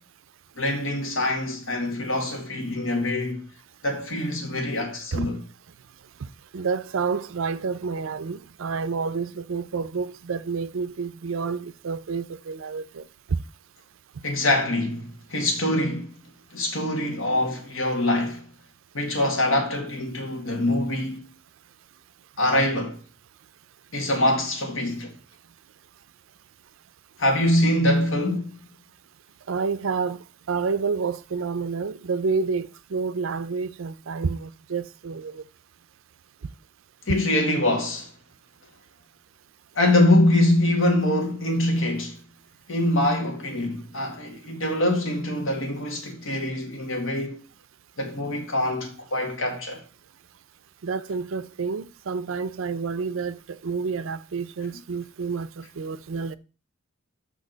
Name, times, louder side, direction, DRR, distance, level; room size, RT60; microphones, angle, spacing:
voice 1, 0.6-3.4 3.8-5.4 14.2-16.2 16.5-18.5 18.9-21.3 22.4-23.0 23.9-25.1 27.2-28.5 37.1-38.1 39.7-42.2 42.7-47.4 48.0-49.8, left 1 dB, 80° left, 1.7 m, -24 dB
voice 2, 6.5-13.0 29.5-30.2 30.5-35.4 50.8-56.4, right 5 dB, 80° right, 0.5 m, -29 dB
6.2 x 5.8 x 3.9 m
head